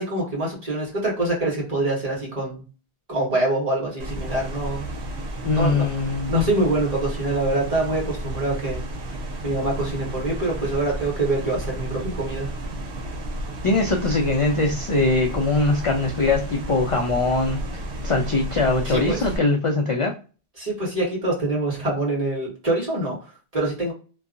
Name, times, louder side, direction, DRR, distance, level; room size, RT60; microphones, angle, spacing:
voice 1, 0.0-2.6 3.1-4.9 5.5-5.9 6.3-8.8 9.4-12.5 18.8-19.2 20.6-23.9, right 2 dB, 35° right, -3 dB, 1.4 m, -25 dB
sound 1, 4.0-19.4, right 1 dB, 85° right, 0.9 m, -32 dB
voice 2, 5.4-6.3 13.6-17.6 18.0-20.1, left 3 dB, 50° left, 0 dB, 0.3 m, -21 dB
2.7 x 2.3 x 2.4 m, 0.35 s
omnidirectional pair, 1.1 m